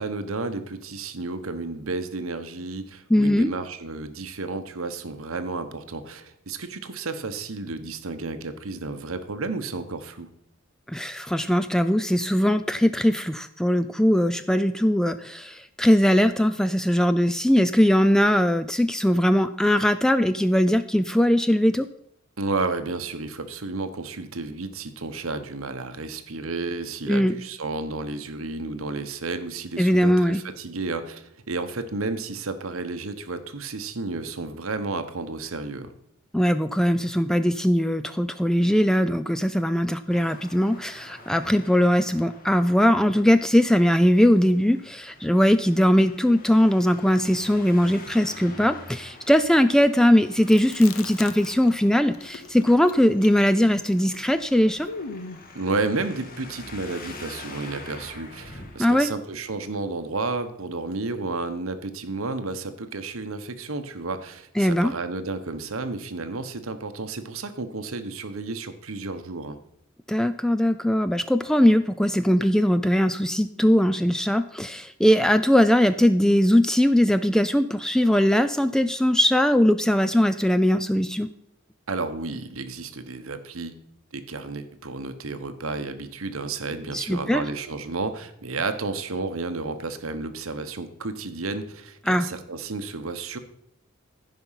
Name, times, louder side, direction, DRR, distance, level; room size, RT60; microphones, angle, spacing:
voice 1, 0.0-10.3 22.4-35.9 55.5-69.6 81.9-83.7 84.1-93.4, right 3 dB, 85° right, 9 dB, 1.1 m, -32 dB
voice 2, 3.1-3.5 10.9-21.9 27.1-27.3 29.8-30.4 36.3-54.9 58.8-59.1 64.6-64.9 70.1-81.3 86.9-87.4 92.1-92.2, equal, 5° left, 11 dB, 0.3 m, -20 dB
Traffic noise roadway noise, 40.1-58.8, left 2 dB, 45° left, 1.6 m, -45 dB
Chewing mastication, 50.4-51.8 52.1-55.5, left 5 dB, 85° left, 0.8 m, -39 dB
15.0 x 5.4 x 5.6 m, 0.74 s
head